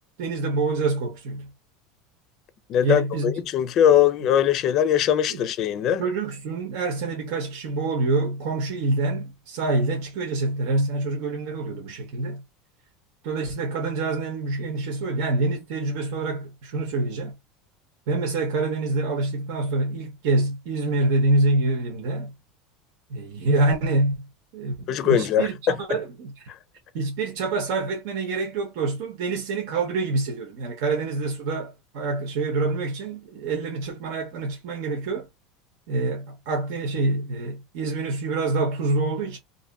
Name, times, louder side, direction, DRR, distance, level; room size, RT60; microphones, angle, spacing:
voice 1, 0.2-1.5 2.8-3.4 5.3-5.4 6.0-12.4 13.2-17.4 18.1-22.3 23.1-24.3 24.5-26.5 26.9-35.3 35.9-39.4, right 3 dB, 65° right, 0.9 m, -26 dB
voice 2, 2.7-6.0 24.9-25.8 26.5-26.6, left 10 dB, 40° left, 0.4 m, -21 dB
2.6 x 2.4 x 2.2 m
supercardioid pair, 150°, 0 cm